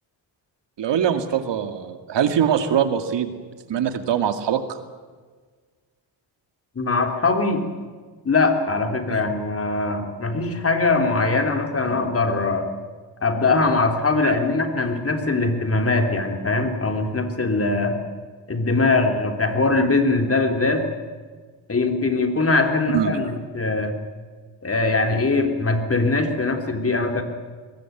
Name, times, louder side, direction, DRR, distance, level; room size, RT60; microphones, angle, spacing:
voice 1, 0.8-3.4 3.7-4.8 9.1-9.2 14.2-14.3 22.9-23.1, right 9 dB, 70° right, 8 dB, 2.3 m, -23 dB
voice 2, 6.8-7.7 8.3-12.7 13.2-18.0 18.5-20.9 21.7-23.9 24.6-27.2, left 3 dB, 30° left, 5 dB, 3.5 m, -21 dB
22.5 x 20.5 x 9.2 m, 1.5 s
cardioid pair, 100°, 45 cm